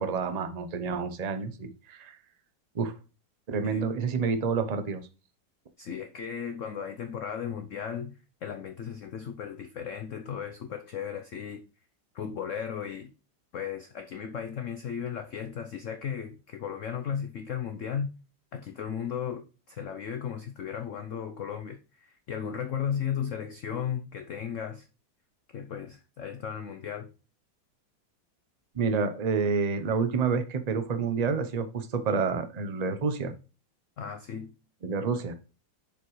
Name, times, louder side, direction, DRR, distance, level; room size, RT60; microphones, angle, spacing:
voice 1, 0.0-2.1 2.7-2.9 3.5-5.1 28.7-33.3 34.8-35.3, right 5 dB, 70° right, 0.3 m, -28 dB
voice 2, 5.8-11.6 12.1-13.1 13.5-18.1 18.5-24.8 25.5-27.1 34.0-34.6, left 8 dB, 65° left, 0.7 m, -35 dB
10.0 x 5.2 x 3.1 m
omnidirectional pair, 2.0 m